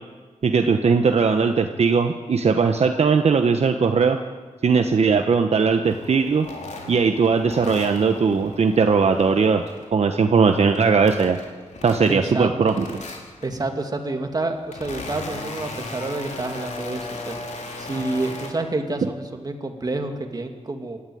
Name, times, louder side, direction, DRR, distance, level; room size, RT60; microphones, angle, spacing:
voice 1, 0.4-4.2 4.6-6.5 6.9-9.6 9.9-11.4 11.8-12.9, right 5 dB, 60° right, 5 dB, 1.1 m, -19 dB
sound 1, 5.8-9.9 10.3-12.4 12.7-13.5 14.2-18.5, left 3 dB, 80° left, 3.9 m, -37 dB
voice 2, 12.1-12.8 13.4-17.4 17.8-21.0, right 2 dB, 35° right, 4 dB, 2.4 m, -28 dB
26.0 x 13.0 x 9.3 m, 1.4 s
wide cardioid pair, 155°, 12 cm